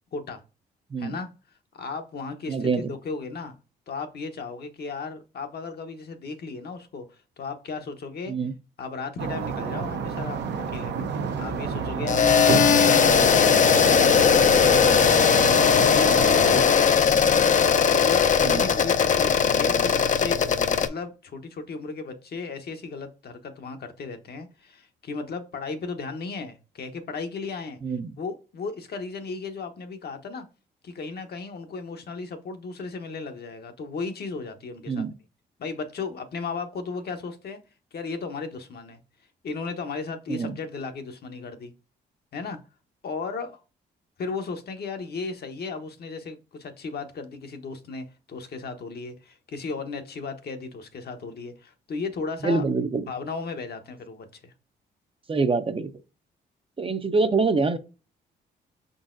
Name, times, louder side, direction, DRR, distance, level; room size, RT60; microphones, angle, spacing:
voice 1, 1.0-1.3 1.7-3.6 3.9-8.3 8.8-10.4 10.7-15.3 15.9-17.1 17.9-20.5 20.8-30.4 30.8-35.1 35.6-37.6 37.9-39.0 39.4-41.7 42.3-42.6 43.0-43.6 44.2-52.6 53.0-54.5, left 4 dB, 60° left, 0.9 m, -35 dB
voice 2, 2.5-2.9 8.3-8.5 18.4-18.6 27.8-28.1 34.9-35.1 40.3-40.6 52.4-53.1 55.3-55.9 56.8-57.8, right 4 dB, 30° right, 0.5 m, -25 dB
sound 1, 9.2-16.6, right 6 dB, 70° right, 0.7 m, -29 dB
sound 2, 12.1-20.9, left 7 dB, 40° left, 0.5 m, -19 dB
5.3 x 3.9 x 2.5 m
cardioid pair, 65°, 19 cm